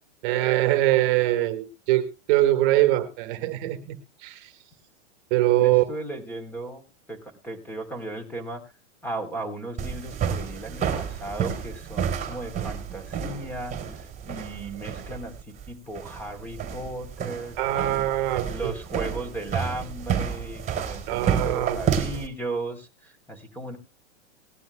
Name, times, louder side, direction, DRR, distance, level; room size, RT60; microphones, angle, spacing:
voice 1, 0.2-4.5 5.3-5.9 17.6-18.7 21.1-21.8, right 15 dB, 45° right, 7 dB, 1.7 m, -23 dB
voice 2, 5.6-8.6 9.0-18.1 18.4-23.8, right 2 dB, 5° left, 7 dB, 3.6 m, -36 dB
sound 1, 9.8-22.3, right 7 dB, 20° right, 3.3 m, -30 dB
19.5 x 12.0 x 2.2 m, 0.28 s
hypercardioid pair, 130°, 35 cm